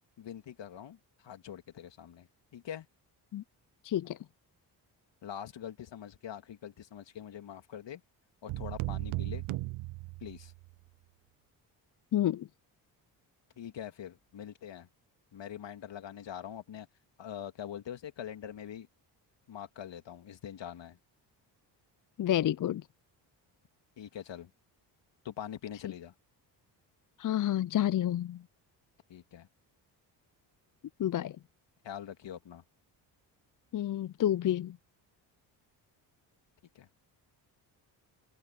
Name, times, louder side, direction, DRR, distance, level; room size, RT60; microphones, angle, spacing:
voice 1, 0.2-2.9 5.2-8.0 8.4-9.5 10.2-10.5 13.6-14.9 15.3-16.9 17.2-18.9 19.5-21.0 24.0-24.5 25.2-26.1 29.1-29.5 31.8-32.6 36.7-36.9, left 9 dB, 60° left, 2.7 m, -44 dB
voice 2, 3.8-4.2 12.1-12.5 22.2-22.8 27.2-28.4 31.0-31.4 33.7-34.8, left 12 dB, 40° left, 0.6 m, -29 dB
sound 1, 8.5-10.7, right 20 dB, 75° right, 1.0 m, -36 dB
supercardioid pair, 55°, 49 cm